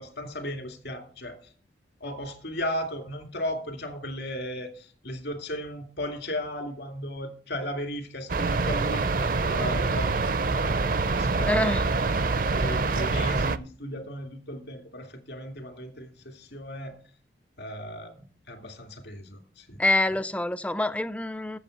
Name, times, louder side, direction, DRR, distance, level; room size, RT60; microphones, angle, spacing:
voice 1, 0.0-1.5 2.0-11.6 12.1-17.0 17.6-19.8 20.1-20.2, left 1 dB, 75° left, 2.4 m, -36 dB
sound 1, 8.3-13.6, right 3 dB, 50° right, 0.5 m, -25 dB
voice 2, 11.5-11.8 19.8-21.6, left 1 dB, 5° left, 0.4 m, -26 dB
8.2 x 7.2 x 6.4 m
head